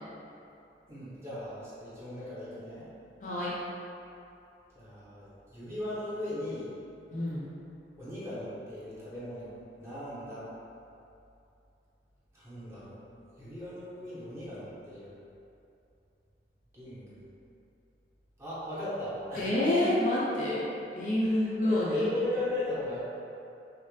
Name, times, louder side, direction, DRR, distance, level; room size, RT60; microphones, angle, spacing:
voice 1, 0.9-2.9 4.7-6.7 8.0-9.5 9.8-10.5 12.3-13.0 13.4-15.1 16.7-17.2 18.4-19.6 21.2-23.0, left 1 dB, 15° right, -11 dB, 1.0 m, -37 dB
voice 2, 3.2-3.5 7.1-7.5 19.4-20.6 20.9-22.1, left 1 dB, 45° left, -7 dB, 0.7 m, -28 dB
5.5 x 2.1 x 3.2 m, 2.7 s
head